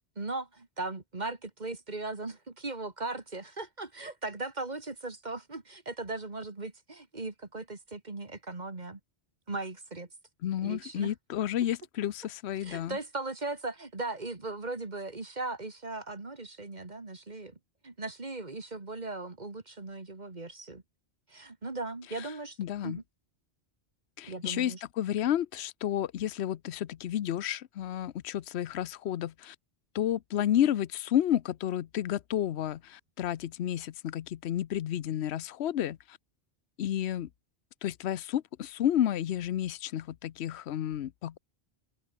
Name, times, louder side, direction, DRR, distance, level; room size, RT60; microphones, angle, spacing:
voice 1, 0.2-9.0 9.5-10.1 10.6-11.1 12.6-17.6 17.8-20.8 21.3-22.6 22.8-23.0 24.2-24.8, right 2 dB, 45° right, 2.1 m, -38 dB
voice 2, 10.4-13.0 22.1-22.3 22.6-23.0 24.2-29.6 29.9-36.2 36.8-37.3 37.8-41.4, left 11 dB, 80° left, 1.0 m, -31 dB
open air
omnidirectional pair, 1.1 m